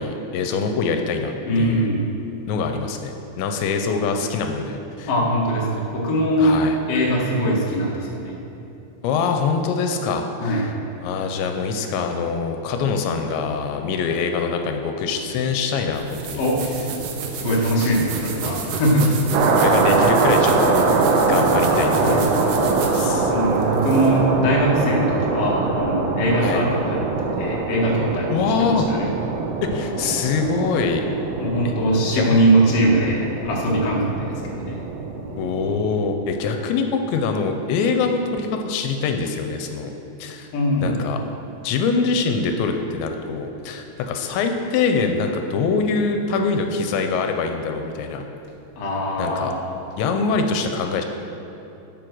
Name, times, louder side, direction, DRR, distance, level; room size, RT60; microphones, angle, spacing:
voice 1, 0.0-1.3 1.6-1.9 2.5-5.1 6.4-6.8 9.0-10.7 11.0-16.4 19.6-20.7 21.3-23.3 26.4-26.7 28.3-28.9 29.6-31.0 31.7-31.8 32.1-32.3 35.4-39.9 40.2-40.5 40.8-41.2 41.6-48.2 49.2-49.5 50.0-51.0, left 5 dB, 85° left, 5 dB, 2.9 m, -24 dB
voice 2, 1.5-2.0 5.1-6.6 6.9-8.4 10.4-10.7 16.4-16.8 17.3-19.1 22.0-22.2 23.3-27.0 27.3-29.1 31.4-34.8 40.5-41.0 48.8-49.6, right 1 dB, 50° left, -4 dB, 2.0 m, -21 dB
sound 1, 15.9-24.2, right 5 dB, 75° right, 2.9 m, -31 dB
sound 2, 19.3-35.9, right 3 dB, 90° right, 3.4 m, -22 dB
12.0 x 7.4 x 6.2 m, 2.9 s
omnidirectional pair, 5.1 m